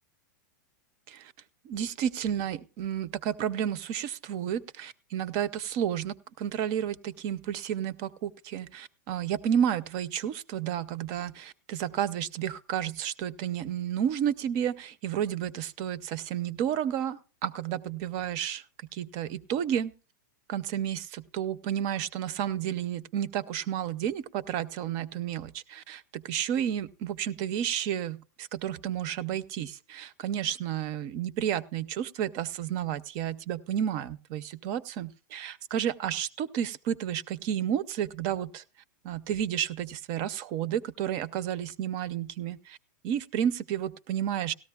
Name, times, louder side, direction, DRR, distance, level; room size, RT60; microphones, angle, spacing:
voice 1, 1.6-18.6 18.9-19.9 20.5-38.6 39.0-42.8 43.0-44.5, right 9 dB, 35° right, 16 dB, 0.5 m, -31 dB
17.5 x 13.5 x 2.3 m, 0.34 s
supercardioid pair, 150°, 10 cm